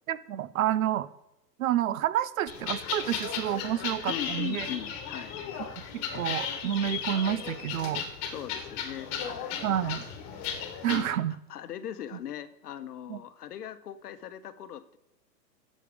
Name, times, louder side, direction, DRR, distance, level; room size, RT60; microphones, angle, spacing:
voice 1, 0.1-1.1 1.6-4.7 5.9-8.0 9.6-10.0 10.8-11.3 13.1-13.2, right 11 dB, 55° right, 17 dB, 0.7 m, -29 dB
sound 1, 2.5-11.0, left 7 dB, 30° left, 1.6 m, -35 dB
voice 2, 3.8-5.4 8.3-9.6 10.9-11.2 11.5-15.0, left 10 dB, 65° left, 13 dB, 1.0 m, -39 dB
9.3 x 7.5 x 5.0 m, 0.87 s
hypercardioid pair, 115°, 50 cm